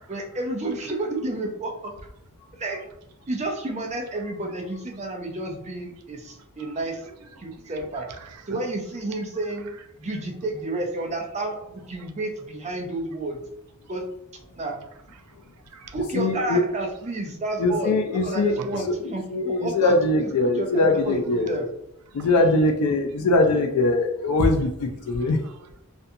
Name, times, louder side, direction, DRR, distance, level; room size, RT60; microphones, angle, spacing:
voice 1, 0.1-1.9 2.5-2.8 3.3-7.0 7.4-8.1 8.5-9.7 10.0-13.4 13.9-14.0 14.6-14.8 15.9-21.7, right 2 dB, 30° right, 1 dB, 0.5 m, -30 dB
voice 2, 7.3-8.6 15.7-15.9 18.6-18.8 19.9-20.0 20.4-20.5 22.2-22.6 22.9-23.4 24.4-24.5 24.9-25.8, right 5 dB, 90° right, 6 dB, 0.4 m, -42 dB
voice 3, 16.1-16.6 17.6-18.5 19.3-21.5 22.1-25.4, left 2 dB, 80° left, 4 dB, 0.4 m, -21 dB
2.5 x 2.2 x 2.6 m, 0.81 s
head